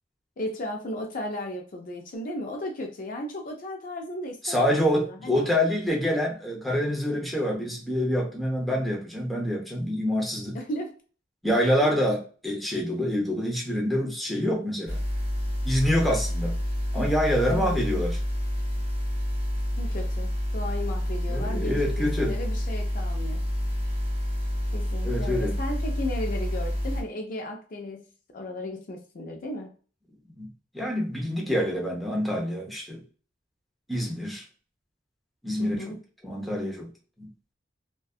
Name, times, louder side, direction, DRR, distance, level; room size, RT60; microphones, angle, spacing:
voice 1, 0.4-5.4 10.5-11.0 11.8-11.9 17.5-17.8 19.8-23.4 24.7-28.1 28.3-29.7 35.6-36.0, left 1 dB, 50° left, 0.4 m, -35 dB
voice 2, 4.4-10.6 11.4-15.0 15.6-16.6 16.9-18.2 21.3-22.4 25.0-25.6 30.4-33.0 33.9-34.4 35.4-35.9 36.2-36.9 37.2-37.3, equal, ahead, 0.6 m, -26 dB
sound 1, 14.9-27.0, equal, 35° right, 1.1 m, -28 dB
2.6 x 2.2 x 2.3 m
head